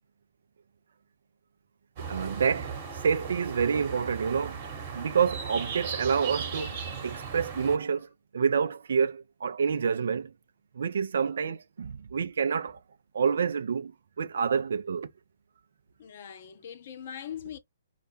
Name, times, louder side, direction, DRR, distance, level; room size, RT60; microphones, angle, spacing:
sound 1, 2.0-7.8, right 6 dB, 40° right, 1.0 m, -37 dB
voice 1, 2.1-4.6 4.9-10.3 10.7-12.8 13.1-13.9 14.2-15.1, right 6 dB, 60° right, 0.3 m, -28 dB
voice 2, 16.0-17.6, left 9 dB, 50° left, 0.5 m, -41 dB
2.3 x 2.1 x 3.0 m
figure-of-eight pair, 125°, 0 cm